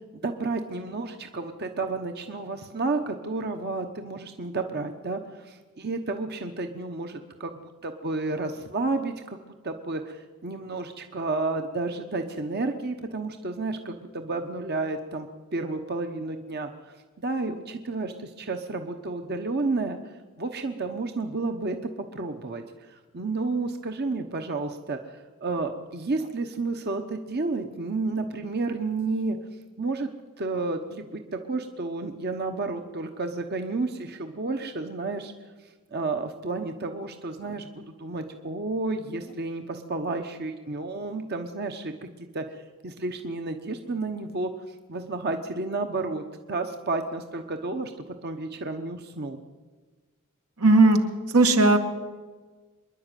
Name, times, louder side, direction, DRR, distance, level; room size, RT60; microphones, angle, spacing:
voice 1, 0.2-9.4 9.6-15.3 15.5-16.7 17.2-29.4 29.8-30.1 30.4-35.3 35.9-47.9 48.2-49.4, right 3 dB, 45° right, 5 dB, 1.1 m, -31 dB
voice 2, 50.6-51.0 51.3-51.8, right 2 dB, 80° right, 5 dB, 2.1 m, -17 dB
25.5 x 11.0 x 9.1 m, 1.3 s
head